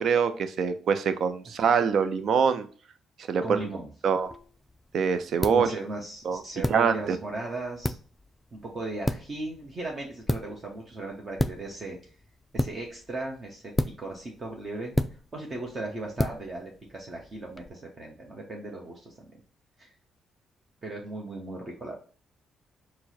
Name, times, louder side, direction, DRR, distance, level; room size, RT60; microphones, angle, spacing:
voice 1, 0.0-2.7 3.3-3.7 4.0-4.3 4.9-5.7 6.2-6.4 6.7-7.2, right 6 dB, 65° right, 11 dB, 0.5 m, -24 dB
voice 2, 3.4-3.9 5.5-8.0 8.5-12.1 12.5-13.6 14.0-15.0 15.3-19.1 19.8-19.9 20.8-21.9, right 2 dB, 35° right, -1 dB, 0.9 m, -37 dB
sound 1, 4.2-17.7, left 1 dB, 15° left, 0.3 m, -34 dB
4.5 x 2.1 x 4.2 m, 0.40 s
cardioid pair, 90°, 0 cm